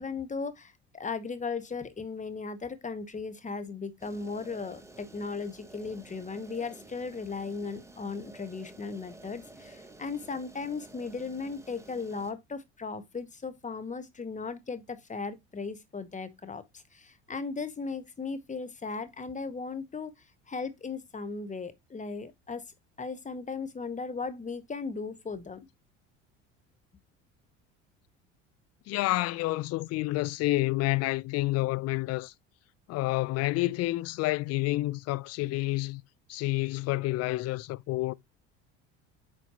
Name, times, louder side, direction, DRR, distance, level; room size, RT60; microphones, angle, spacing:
voice 1, 0.0-20.1 20.5-22.6 23.0-25.7, left 4 dB, 20° left, 1.1 m, -37 dB
sound 1, 4.0-12.3, right 2 dB, 10° right, 1.2 m, -51 dB
voice 2, 28.9-32.3 32.9-36.0 36.3-38.1, left 19 dB, 45° left, 0.4 m, -29 dB
8.5 x 4.4 x 2.8 m
hypercardioid pair, 70°, 37 cm